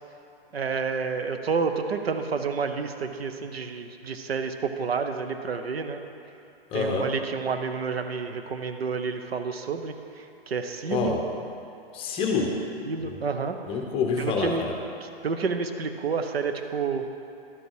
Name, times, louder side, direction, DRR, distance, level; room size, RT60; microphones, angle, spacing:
voice 1, 0.5-6.0 6.7-9.9 10.5-11.2 12.9-13.6 14.2-14.7 15.0-17.0, right 5 dB, 75° right, 7 dB, 0.8 m, -29 dB
voice 2, 6.7-7.1 10.9-11.2 11.9-12.5 13.0-13.2 13.7-14.7, left 5 dB, 20° left, 1 dB, 0.8 m, -27 dB
11.5 x 5.2 x 4.8 m, 2.7 s
hypercardioid pair, 125°, 31 cm